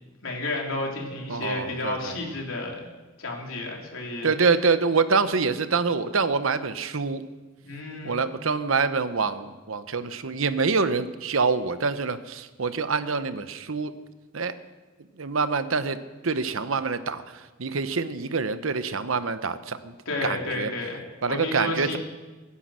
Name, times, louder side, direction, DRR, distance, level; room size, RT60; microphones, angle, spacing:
voice 1, 0.2-2.9 3.2-4.3 7.6-8.2 20.0-22.0, left 2 dB, 80° left, 0 dB, 3.4 m, -31 dB
voice 2, 1.3-2.2 4.2-7.2 8.0-13.9 14.3-14.5 15.2-16.0 16.2-19.9 20.2-20.7 21.2-22.0, right 4 dB, 80° right, 12 dB, 0.9 m, -26 dB
22.0 x 9.8 x 6.4 m, 1.3 s
head